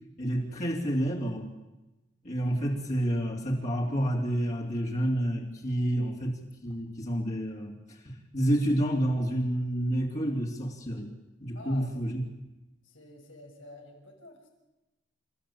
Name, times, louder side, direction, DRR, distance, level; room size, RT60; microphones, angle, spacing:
voice 1, 0.2-1.5 2.2-7.7 8.0-11.1 11.4-12.3, equal, 35° left, -2 dB, 2.9 m, -29 dB
voice 2, 11.5-11.9 12.8-14.5, left 1 dB, 85° left, 1 dB, 6.4 m, -48 dB
28.0 x 14.5 x 8.6 m, 1.0 s
head